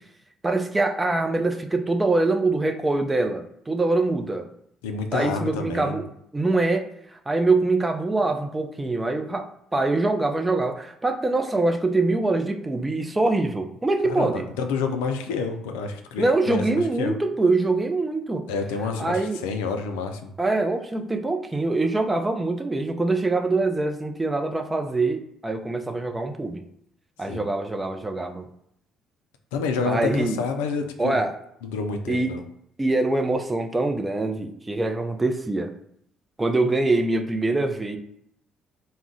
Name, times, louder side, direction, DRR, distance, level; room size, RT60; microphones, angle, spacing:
voice 1, 0.4-4.5 5.1-6.0 6.3-9.5 9.7-14.4 16.2-18.5 19.0-19.4 20.4-26.6 27.2-28.5 29.9-30.4 31.0-31.3 32.1-32.3 32.8-35.7 36.4-38.0, right 2 dB, 20° right, 6 dB, 0.4 m, -24 dB
voice 2, 4.8-6.1 14.0-17.2 18.5-20.3 27.3-27.5 29.5-31.2 31.6-32.4, left 5 dB, 80° left, 5 dB, 0.3 m, -29 dB
2.3 x 2.1 x 3.7 m, 0.73 s
hypercardioid pair, 50°, 0 cm